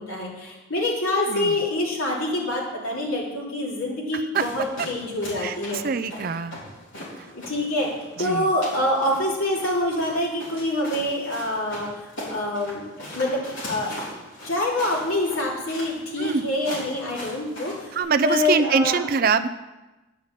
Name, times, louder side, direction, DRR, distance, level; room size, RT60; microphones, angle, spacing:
voice 1, 0.0-5.9 7.3-7.9 8.2-13.9 14.4-18.0 18.2-19.0, left 1 dB, 85° left, -3 dB, 3.2 m, -26 dB
voice 2, 1.3-1.6 4.1-4.5 5.4-6.6 7.2-7.3 8.2-8.5 16.2-16.4 17.9-19.5, right 5 dB, 45° right, 9 dB, 0.4 m, -24 dB
sound 1, 4.3-18.0, left 1 dB, 65° left, 4.2 m, -39 dB
10.5 x 5.6 x 7.4 m, 1.1 s
head